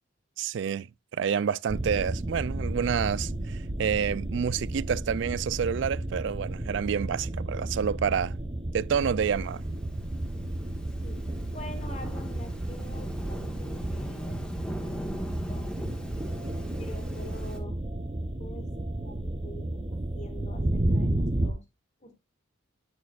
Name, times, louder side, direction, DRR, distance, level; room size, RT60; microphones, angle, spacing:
voice 1, 0.4-0.9 1.1-8.4 8.7-9.6, right 7 dB, 65° right, 0.3 m, -28 dB
sound 1, 1.7-21.5, right 1 dB, 30° right, 0.7 m, -32 dB
Thunderstorm / Rain, 9.9-17.6, equal, 5° left, 1.3 m, -40 dB
voice 2, 11.5-15.1 15.5-15.7 16.8-17.8 18.2-18.7 19.0-21.6 22.0-22.2, left 1 dB, 35° left, 1.9 m, -46 dB
9.2 x 6.8 x 2.4 m
head